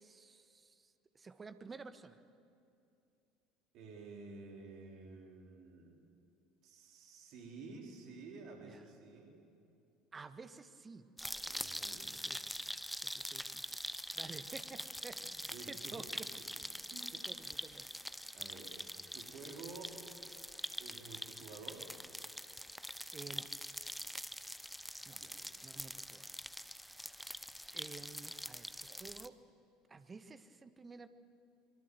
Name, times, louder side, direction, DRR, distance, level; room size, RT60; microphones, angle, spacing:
voice 1, 0.0-2.2 8.6-8.8 10.1-11.5 11.8-12.4 13.0-13.7 14.1-16.3 16.6-16.7 17.1-17.9 23.1-23.5 25.0-25.2 25.6-26.3 27.7-29.4 29.9-31.1, right 4 dB, 20° right, 11 dB, 1.4 m, -52 dB
voice 2, 3.7-6.0 6.6-9.3 11.4-12.1 15.2-16.0 16.7-17.3 18.3-18.8 19.1-20.0 20.8-21.9 25.0-25.5, right 4 dB, 50° right, 1 dB, 3.8 m, -52 dB
sound 1, 11.2-29.3, equal, ahead, 0.8 m, -44 dB
24.5 x 23.0 x 7.8 m, 2.6 s
figure-of-eight pair, 65°, 0 cm